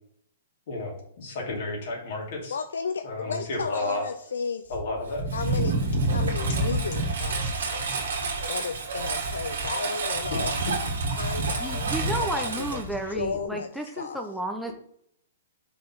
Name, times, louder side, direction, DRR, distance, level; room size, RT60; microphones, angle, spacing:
voice 1, 0.7-2.5 3.0-4.0 4.7-5.3 10.3-10.4, left 2 dB, 60° left, -1 dB, 2.6 m, -32 dB
voice 2, 2.5-4.8 5.3-7.7 8.5-10.6 11.1-12.8 13.2-13.7 14.0-14.2, left 5 dB, 80° left, 8 dB, 0.5 m, -33 dB
Engine, 4.7-13.5, right 2 dB, 75° right, 1.8 m, -28 dB
voice 3, 11.6-14.7, right 1 dB, ahead, 3 dB, 0.7 m, -32 dB
5.3 x 4.3 x 5.5 m, 0.69 s
hypercardioid pair, 125°, 0 cm